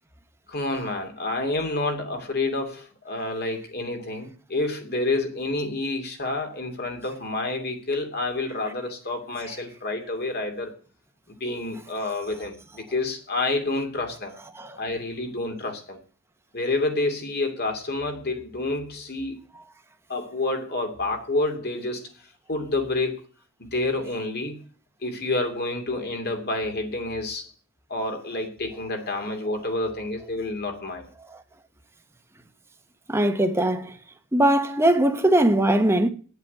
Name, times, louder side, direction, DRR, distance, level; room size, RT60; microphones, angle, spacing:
voice 1, 0.5-10.8 11.3-14.3 14.8-16.0 16.5-19.4 20.1-22.1 22.5-23.2 23.6-24.6 25.0-27.5 27.9-31.1, left 2 dB, 45° left, 2.7 m, -28 dB
voice 2, 33.1-34.0 34.3-36.1, right 1 dB, 10° right, 1.2 m, -20 dB
9.8 x 8.1 x 8.6 m
head